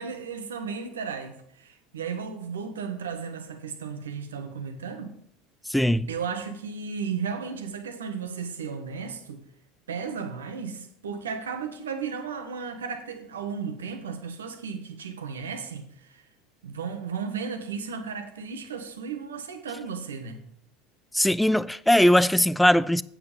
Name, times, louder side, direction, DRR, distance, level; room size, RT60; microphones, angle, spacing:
voice 1, 0.0-5.1 6.1-9.4 9.9-16.2 16.6-20.4, right 6 dB, 85° right, 1.3 m, -34 dB
voice 2, 5.7-6.1 21.1-23.0, left 1 dB, 5° left, 0.4 m, -20 dB
8.6 x 7.6 x 5.2 m
hypercardioid pair, 80°, 0 cm